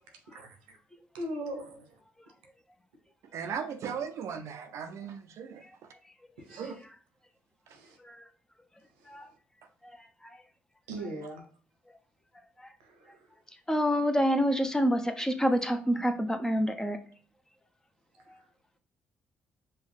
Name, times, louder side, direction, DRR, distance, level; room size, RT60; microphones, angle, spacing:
voice 1, 0.3-0.8 1.1-2.0 6.4-6.7 7.7-8.0 9.0-9.1 10.9-11.4 12.8-13.3 18.3-18.4, right 1 dB, 90° right, 0.9 m, -41 dB
voice 2, 3.3-5.6 6.6-6.8, right 7 dB, 65° right, 0.5 m, -37 dB
voice 3, 13.7-17.0, equal, 10° left, 0.7 m, -27 dB
5.4 x 2.3 x 3.4 m
hypercardioid pair, 55°, 5 cm